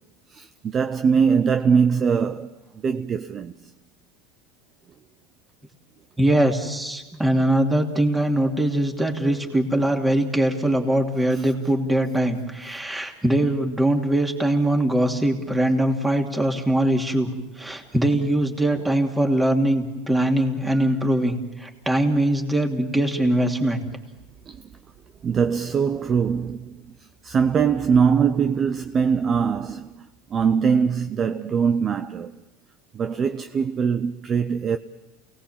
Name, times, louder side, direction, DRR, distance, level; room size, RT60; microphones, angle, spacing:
voice 1, 0.3-3.7 7.3-7.5 9.4-9.5 11.3-11.5 13.4-13.5 17.6-17.7 18.7-19.0 20.7-21.2 24.5-24.7 25.2-32.4 32.9-34.8, right 6 dB, 30° right, 0.7 m, -23 dB
voice 2, 6.2-17.3 17.6-23.8, right 1 dB, 10° right, 2.8 m, -22 dB
29.0 x 18.5 x 7.4 m
supercardioid pair, 125°, 0 cm